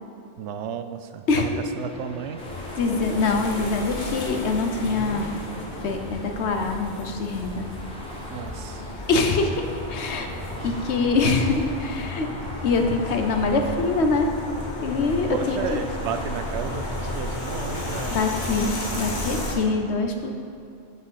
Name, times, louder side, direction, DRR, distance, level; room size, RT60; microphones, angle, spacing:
voice 1, 0.4-1.5 1.8-2.4 8.3-8.8 10.6-10.7 12.9-13.0 15.0-18.2, right 7 dB, 90° right, 9 dB, 0.9 m, -33 dB
sound 1, 1.7-19.8, left 1 dB, 5° left, 0.9 m, -42 dB
sound 2, 2.4-19.6, left 2 dB, 45° left, 1.3 m, -33 dB
voice 2, 2.8-5.4 5.8-7.7 9.1-10.3 10.6-12.3 12.6-14.3 14.8-15.6 18.1-20.3, left 3 dB, 80° left, 5 dB, 1.1 m, -24 dB
sound 3, 7.3-13.4, equal, 25° left, 1.9 m, -44 dB
7.9 x 6.3 x 5.6 m, 2.6 s
omnidirectional pair, 1.1 m